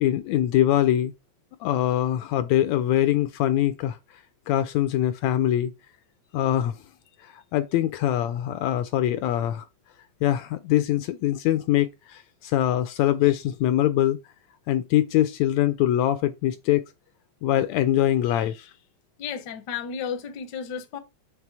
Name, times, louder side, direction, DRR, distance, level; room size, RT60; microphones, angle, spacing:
voice 1, 0.0-1.1 1.6-4.0 4.5-5.7 6.3-6.8 7.2-9.6 10.2-14.2 14.7-16.8 17.4-18.7, left 12 dB, 80° left, 1.7 m, -23 dB
voice 2, 19.2-21.0, left 7 dB, 65° left, 1.1 m, -33 dB
7.4 x 3.3 x 4.6 m
omnidirectional pair, 3.4 m